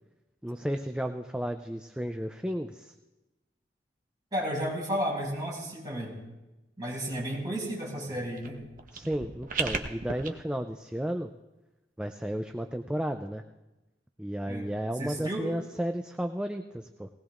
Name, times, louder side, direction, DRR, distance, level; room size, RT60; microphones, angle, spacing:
voice 1, 0.4-2.9 8.9-11.3 12.0-13.4 14.2-17.1, equal, 5° right, 5 dB, 0.4 m, -33 dB
voice 2, 4.3-6.1 6.8-8.6 14.5-14.7 15.0-15.5, equal, 25° right, -4 dB, 5.0 m, -33 dB
sound 1, 8.4-10.3, right 5 dB, 50° right, 1.0 m, -35 dB
19.0 x 18.5 x 2.5 m, 1.0 s
head